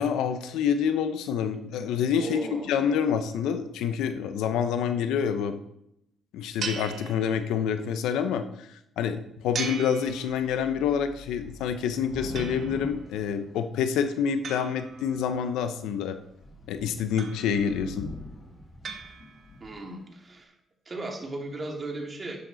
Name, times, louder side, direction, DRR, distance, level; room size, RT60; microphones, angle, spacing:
voice 1, 0.0-5.6 6.3-8.7 9.0-16.2 16.7-18.1, left 7 dB, 90° left, 9 dB, 0.9 m, -27 dB
voice 2, 2.2-2.7 19.6-20.5 20.9-22.4, right 2 dB, 35° right, 2 dB, 2.6 m, -36 dB
sound 1, 6.6-7.8 9.5-10.8 12.4-13.1 14.4-15.6 17.2-17.9 18.8-19.7, right 6 dB, 60° right, 1.4 m, -39 dB
Thunder / Rain, 9.7-9.8 10.1-14.2 14.9-15.4 15.8-15.9 16.2-19.9, left 2 dB, 40° left, 2.4 m, -43 dB
11.0 x 9.5 x 4.1 m, 0.78 s
cardioid pair, 90°, 0 cm